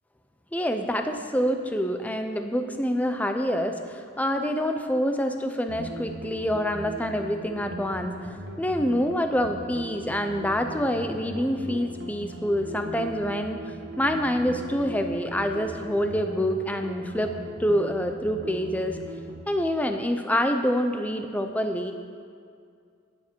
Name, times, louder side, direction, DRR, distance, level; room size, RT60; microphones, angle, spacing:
voice 1, 0.5-13.6 14.0-17.3 17.6-19.0 19.5-21.9, equal, 10° left, 6 dB, 0.6 m, -26 dB
sound 1, 5.7-19.4, right 1 dB, 65° right, 1.5 m, -39 dB
17.5 x 7.4 x 4.5 m, 2.3 s
head